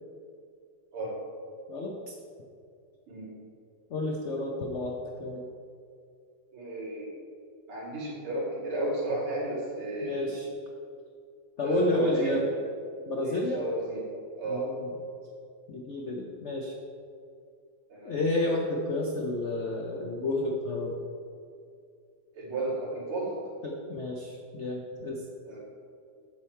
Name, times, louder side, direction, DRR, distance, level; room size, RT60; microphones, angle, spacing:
voice 1, 1.7-2.1 3.9-5.4 10.0-10.5 11.6-12.4 13.1-13.6 14.5-14.9 15.7-16.7 18.0-21.0 23.6-25.2, left 1 dB, 80° left, 0 dB, 0.6 m, -31 dB
voice 2, 6.5-7.1 7.7-10.4 11.6-12.4 13.2-14.0 14.4-14.7 17.9-18.2 22.3-23.3 25.5-25.6, right 1 dB, 90° right, -6 dB, 3.3 m, -32 dB
7.8 x 7.2 x 4.4 m, 2.4 s
omnidirectional pair, 2.3 m